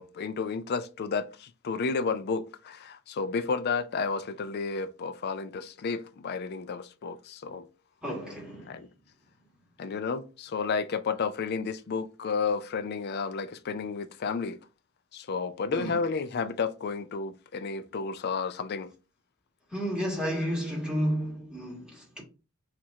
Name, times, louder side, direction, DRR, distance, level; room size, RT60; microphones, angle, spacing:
voice 1, 0.0-7.7 8.7-8.9 9.8-14.6 15.1-18.9, left 5 dB, 50° left, 0.4 m, -32 dB
voice 2, 8.0-8.7 15.7-16.0 19.7-22.2, equal, 5° right, 1.5 m, -31 dB
4.5 x 2.5 x 4.1 m
head